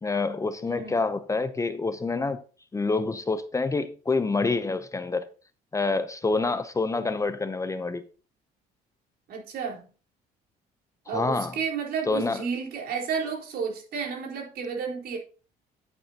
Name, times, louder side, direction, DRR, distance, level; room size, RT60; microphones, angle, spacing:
voice 1, 0.0-2.4 2.7-5.3 5.7-8.0 11.1-11.6 12.1-12.4, left 3 dB, 20° left, 0.7 m, -27 dB
voice 2, 9.3-9.9 11.1-15.2, right 6 dB, 65° right, 4.3 m, -31 dB
10.5 x 8.9 x 2.8 m
cardioid pair, 110°, 17 cm